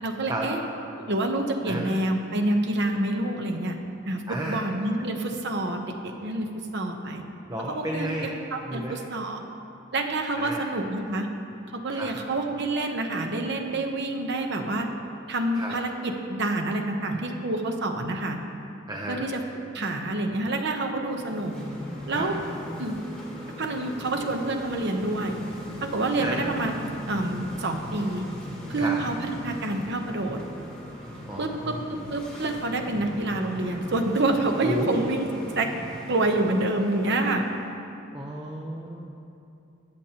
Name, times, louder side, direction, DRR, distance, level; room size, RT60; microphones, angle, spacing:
voice 1, 0.0-0.6 1.1-3.7 4.1-7.2 7.7-9.4 9.9-11.3 11.7-14.9 15.3-18.4 19.1-19.4 19.7-21.5 22.1-22.4 22.8-23.0 23.6-25.4 25.8-26.7 27.1-28.3 28.7-30.4 31.4-31.8 32.1-35.2 35.5-35.7 36.1-37.5, right 2 dB, 55° right, 4 dB, 0.9 m, -27 dB
voice 2, 4.3-4.6 7.5-8.3 8.7-9.0 10.4-10.6 11.9-12.1 15.5-15.8 18.9-19.2 22.1-22.3 26.2-26.4 28.8-29.0 31.3-31.8 34.6-35.0 38.1-39.1, equal, 20° right, -2 dB, 0.7 m, -32 dB
sound 1, 21.0-37.6, equal, 5° left, 1.7 m, -39 dB
20.5 x 7.1 x 2.9 m, 2.7 s
head